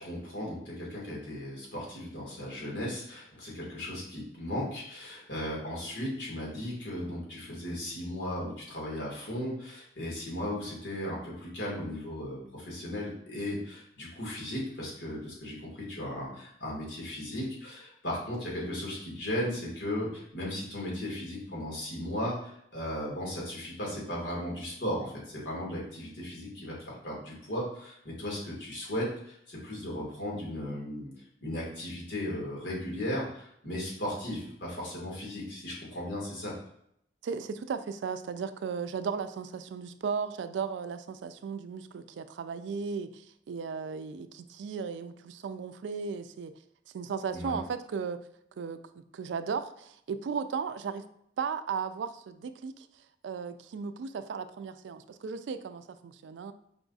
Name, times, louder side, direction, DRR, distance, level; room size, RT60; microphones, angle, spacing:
voice 1, 0.0-31.1 31.4-36.5 47.3-47.6, left 1 dB, 75° left, -4 dB, 1.7 m, -36 dB
voice 2, 37.2-46.5 46.9-48.2 48.6-48.8 49.1-51.1 51.4-52.9 53.2-56.5, right 6 dB, 90° right, 11 dB, 0.3 m, -36 dB
4.8 x 2.4 x 3.9 m, 0.73 s
head